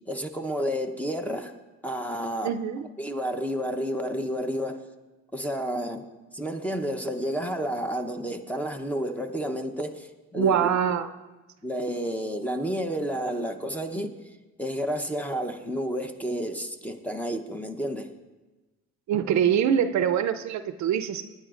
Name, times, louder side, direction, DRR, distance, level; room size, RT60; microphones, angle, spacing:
voice 1, 0.1-1.5 1.8-2.5 3.0-4.8 5.3-6.1 6.3-10.7 11.6-14.2 14.6-18.1, equal, 5° left, 6 dB, 0.8 m, -30 dB
voice 2, 2.4-2.9 10.4-11.1 19.1-21.4, right 9 dB, 65° right, 10 dB, 0.6 m, -24 dB
19.0 x 10.0 x 2.5 m, 1.2 s
cardioid pair, 90°, 30 cm